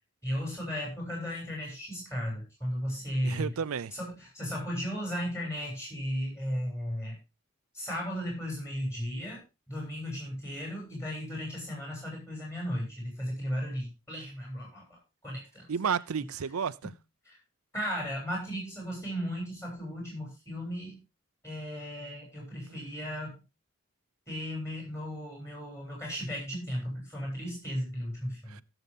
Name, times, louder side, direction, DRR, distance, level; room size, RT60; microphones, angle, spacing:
voice 1, 0.2-3.5 3.9-7.2 7.7-15.7 16.8-16.9 17.3-17.4 17.7-21.0 21.4-23.4 24.3-28.6, equal, 15° left, 7.2 m, -35 dB
voice 2, 3.2-3.9 15.7-16.9 28.5-28.6, right 6 dB, 90° right, 0.5 m, -32 dB
17.0 x 7.0 x 3.6 m
head